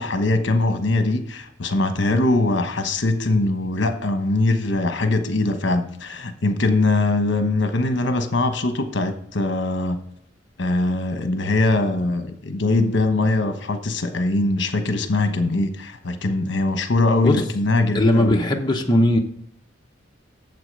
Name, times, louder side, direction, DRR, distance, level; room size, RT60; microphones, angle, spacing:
voice 1, 0.0-10.0 10.6-18.4, left 2 dB, 65° left, 7 dB, 1.0 m, -22 dB
voice 2, 17.9-19.2, left 1 dB, 25° left, 1 dB, 0.8 m, -18 dB
8.0 x 7.2 x 5.3 m, 0.69 s
head